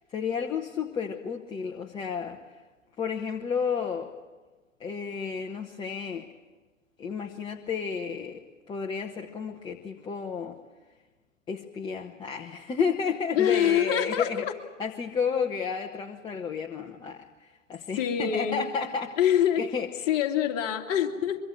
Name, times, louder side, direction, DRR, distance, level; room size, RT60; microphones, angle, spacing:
voice 1, 0.1-2.4 3.0-4.1 4.8-6.3 7.0-8.4 8.7-10.6 11.5-14.4 14.8-19.2 19.6-20.1, left 6 dB, 10° left, 2 dB, 1.0 m, -32 dB
voice 2, 13.3-14.5 18.0-18.7 19.2-19.6 20.1-21.4, left 9 dB, 30° left, 2 dB, 2.4 m, -25 dB
24.0 x 23.5 x 8.0 m, 1.3 s
figure-of-eight pair, 115°, 39 cm